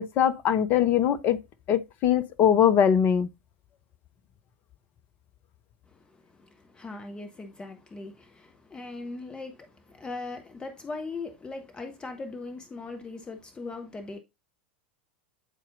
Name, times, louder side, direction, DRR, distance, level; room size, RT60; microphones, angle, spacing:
voice 1, 0.0-1.4 1.7-3.3, left 9 dB, 35° left, 0.8 m, -22 dB
voice 2, 5.9-14.2, left 3 dB, 15° left, 1.4 m, -40 dB
9.2 x 4.3 x 3.7 m
figure-of-eight pair, 85°, 5 cm